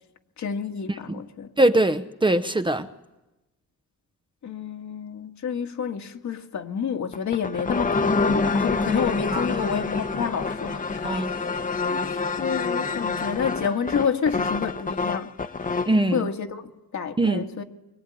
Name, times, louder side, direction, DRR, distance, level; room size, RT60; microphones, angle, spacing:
voice 1, 0.4-1.5 4.4-11.2 11.8-15.3 16.1-17.6, left 7 dB, 60° left, 1.9 m, -29 dB
voice 2, 1.6-2.9 9.3-9.4 11.0-11.3 15.9-16.3 17.2-17.4, right 1 dB, 15° right, 0.8 m, -22 dB
sound 1, 7.1-16.0, left 4 dB, 25° left, 1.1 m, -27 dB
23.5 x 23.5 x 9.9 m
cardioid pair, 110°, 32 cm